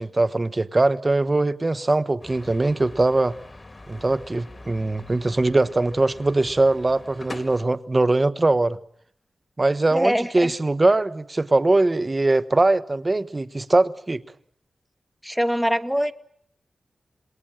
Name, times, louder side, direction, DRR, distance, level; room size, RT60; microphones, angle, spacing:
voice 1, 0.0-3.4 3.9-8.8 9.6-14.2, right 2 dB, 30° right, 1.1 m, -21 dB
sound 1, 2.2-7.6, left 2 dB, 30° left, 2.0 m, -43 dB
voice 2, 9.9-10.5 15.2-16.1, equal, ahead, 1.1 m, -23 dB
27.5 x 20.5 x 8.9 m
wide cardioid pair, 110°, 0 cm